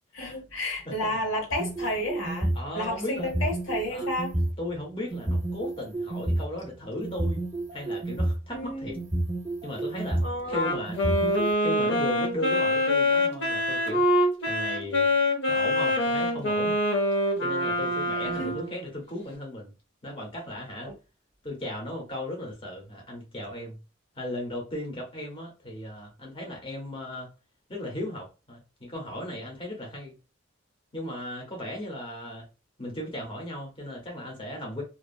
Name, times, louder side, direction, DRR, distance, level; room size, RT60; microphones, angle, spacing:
voice 1, 0.1-2.5 2.7-4.3 8.5-9.0 10.2-10.7 18.2-18.6 20.8-20.9, left 1 dB, 85° left, 1.0 m, -31 dB
voice 2, 0.8-1.1 2.5-3.3 3.9-4.1 4.6-7.4 7.7-9.0 9.6-11.0 11.6-14.0 14.4-15.1 15.5-16.8 17.4-19.7 20.0-20.9 21.4-23.8 24.1-27.3 27.7-30.1 30.9-32.5 32.8-34.8, left 1 dB, 25° left, 0.8 m, -36 dB
sound 1, 1.5-2.7 3.2-4.5 5.1-6.4 7.0-8.4 9.0-10.3 10.9-11.5, right 1 dB, 20° right, 0.6 m, -29 dB
Wind instrument woodwind instrument, 10.5-18.8, left 1 dB, 65° left, 0.7 m, -25 dB
2.6 x 2.3 x 2.3 m
head